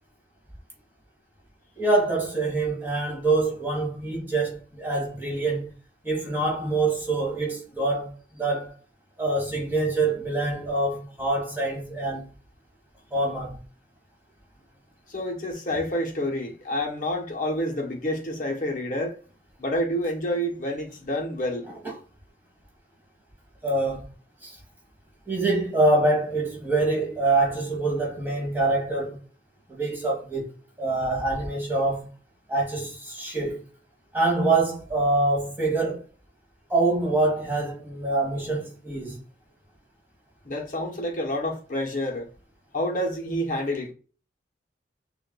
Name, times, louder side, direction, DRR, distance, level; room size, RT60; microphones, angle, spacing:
voice 1, 1.8-5.7 6.0-8.1 8.4-8.7 9.2-12.3 13.1-13.6 21.8-21.9 23.6-24.0 24.4-24.6 25.3-29.2 29.7-30.4 30.8-32.1 32.5-33.6 34.1-36.0 36.7-39.2, right 2 dB, 10° right, 1.3 m, -25 dB
voice 2, 15.1-19.2 19.6-21.7 40.4-42.3 42.7-43.9, equal, 45° left, 1.0 m, -28 dB
6.4 x 2.5 x 2.3 m
head